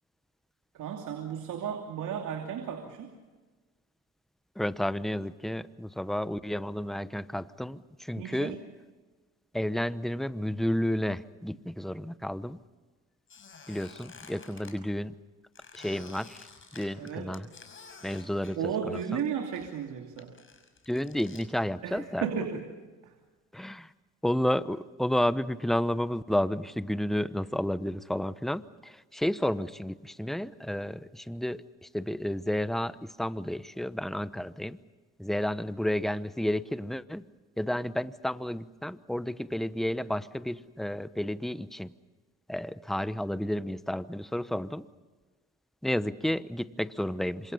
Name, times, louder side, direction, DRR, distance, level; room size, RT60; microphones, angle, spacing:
voice 1, 0.7-3.1 8.2-8.6 17.0-17.3 18.5-20.3 21.8-22.6 23.0-23.1, right 7 dB, 80° right, 3 dB, 3.0 m, -34 dB
voice 2, 4.6-8.6 9.5-12.6 13.7-15.1 15.7-16.4 16.7-17.5 18.0-18.6 18.9-19.0 20.9-22.2 23.5-23.9 24.2-34.8 35.2-37.2 37.6-41.9 42.5-44.9 45.8-47.5, left 1 dB, ahead, 14 dB, 0.9 m, -31 dB
Squeak, 13.3-14.8 15.6-19.3 19.5-21.5, left 5 dB, 40° left, 6.2 m, -51 dB
27.5 x 26.5 x 5.6 m, 1.3 s
cardioid pair, 90°, 30 cm